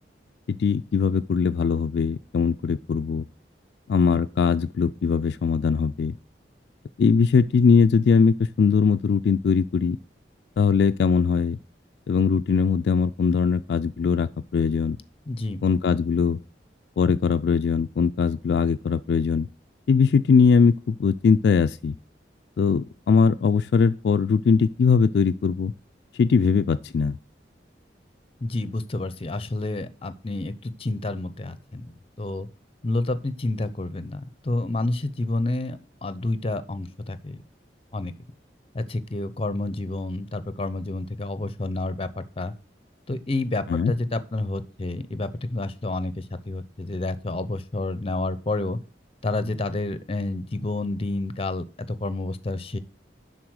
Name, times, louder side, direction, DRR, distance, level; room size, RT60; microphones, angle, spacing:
voice 1, 0.5-3.2 3.9-6.1 7.0-10.0 10.6-11.6 12.1-15.0 15.6-16.4 17.0-19.5 19.9-21.9 22.6-25.7 26.2-27.1 43.7-43.9, left 5 dB, 65° left, 0.3 m, -21 dB
voice 2, 15.3-15.6 28.4-32.5 32.8-37.4 37.9-38.1 38.7-42.5 43.1-48.8 49.2-52.8, left 2 dB, 30° left, 0.6 m, -29 dB
11.0 x 4.1 x 6.3 m
head